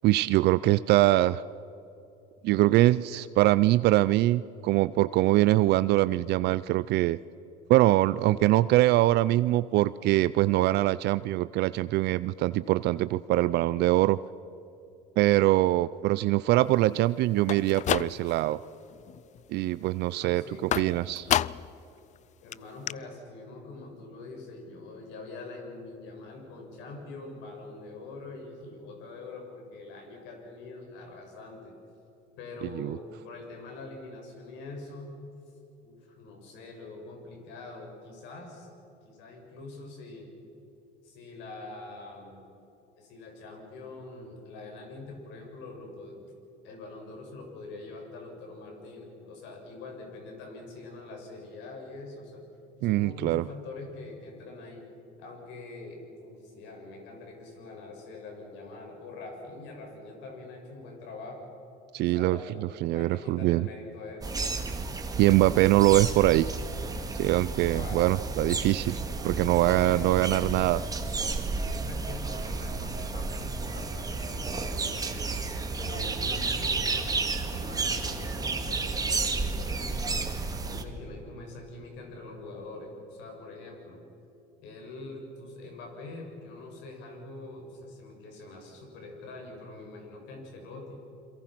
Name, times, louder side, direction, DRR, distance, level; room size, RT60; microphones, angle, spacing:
voice 1, 0.0-1.4 2.4-7.2 7.7-14.2 15.2-18.6 19.5-21.3 32.7-33.0 52.8-53.4 61.9-62.4 62.8-63.7 65.2-66.5 67.2-70.8, right 16 dB, 60° right, 16 dB, 0.5 m, -23 dB
sound 1, 17.4-18.5 18.9-19.4 20.7-21.8 22.2-22.3 22.5-22.6 22.9-23.0, left 11 dB, 40° left, 0.5 m, -30 dB
voice 2, 20.1-21.1 22.4-31.7 32.4-35.1 35.8-38.7 39.0-40.3 41.0-42.4 43.0-46.3 46.6-52.4 52.8-54.8 55.2-61.5 62.0-64.4 67.7-68.0 69.7-70.1 71.6-75.4 75.8-80.2 80.6-84.0 84.6-91.0, left 2 dB, 70° left, 2 dB, 6.8 m, -44 dB
sound 2, 64.2-80.8, right 3 dB, 20° right, 2.3 m, -32 dB
28.5 x 23.0 x 6.0 m, 3.0 s
supercardioid pair, 105°, 19 cm